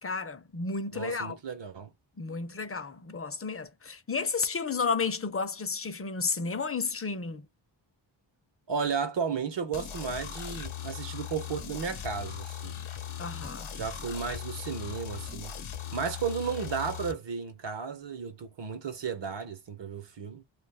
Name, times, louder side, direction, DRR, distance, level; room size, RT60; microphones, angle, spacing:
voice 1, 0.0-1.4 2.2-7.5 13.2-13.7, left 4 dB, 30° left, 0.5 m, -32 dB
voice 2, 0.9-1.9 8.7-12.8 13.7-15.5 15.9-20.4, right 6 dB, 65° right, 0.9 m, -34 dB
sound 1, 9.7-17.1, left 8 dB, 90° left, 0.8 m, -39 dB
2.5 x 2.3 x 3.3 m
wide cardioid pair, 125°, 47 cm